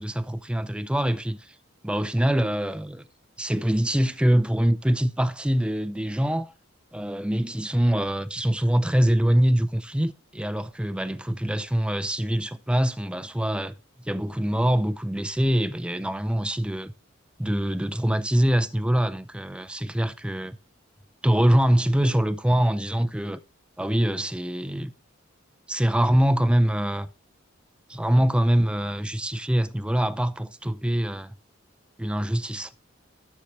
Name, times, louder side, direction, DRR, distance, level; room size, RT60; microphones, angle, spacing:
voice 1, 0.0-1.5 1.8-3.1 3.4-6.5 6.9-13.7 14.0-16.9 17.4-20.6 21.2-23.4 23.8-24.9 25.7-27.1 27.9-31.3 32.0-32.7, equal, 5° right, 0.5 m, -24 dB
11.5 x 7.0 x 3.3 m
head